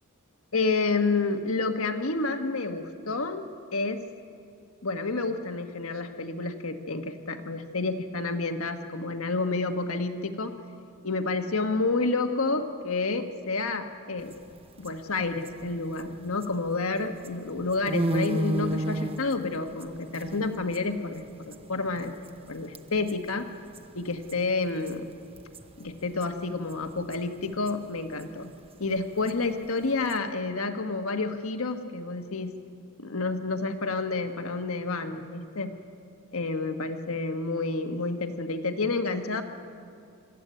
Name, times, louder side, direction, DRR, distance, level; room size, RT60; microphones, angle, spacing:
voice 1, 0.5-3.4 3.7-4.0 4.8-10.5 11.0-14.4 14.8-22.1 22.5-23.5 23.9-25.1 25.8-28.5 28.8-32.5 33.0-35.7 36.3-39.4, left 3 dB, 75° left, 6 dB, 1.4 m, -29 dB
sound 1, 14.2-16.7 17.0-22.5 22.7-23.1 23.4-23.5 23.7-26.3 26.6-30.2, right 1 dB, 25° right, 0.9 m, -33 dB
24.0 x 14.0 x 9.3 m, 2.4 s
head